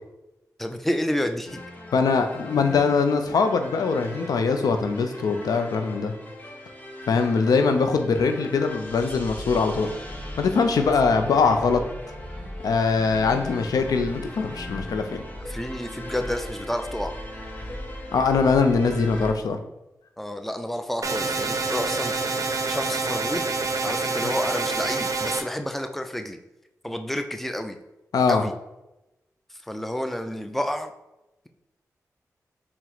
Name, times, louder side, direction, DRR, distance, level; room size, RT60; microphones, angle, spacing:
voice 1, 0.6-1.6 10.8-10.9 15.5-17.1 20.2-23.5 23.8-26.4 26.8-27.8 28.3-28.5 29.5-30.9, equal, 5° left, 6 dB, 0.4 m, -30 dB
sound 1, 1.5-19.3, left 1 dB, 25° left, 0.8 m, -38 dB
voice 2, 1.9-6.1 7.1-9.9 10.4-11.8 12.6-15.2 18.1-19.6 24.2-24.3 28.1-28.4, left 4 dB, 80° left, 7 dB, 0.4 m, -22 dB
sound 2, 21.0-25.4, right 3 dB, 60° right, 0.5 m, -27 dB
4.3 x 2.0 x 3.9 m, 0.94 s
cardioid pair, 40°, 6 cm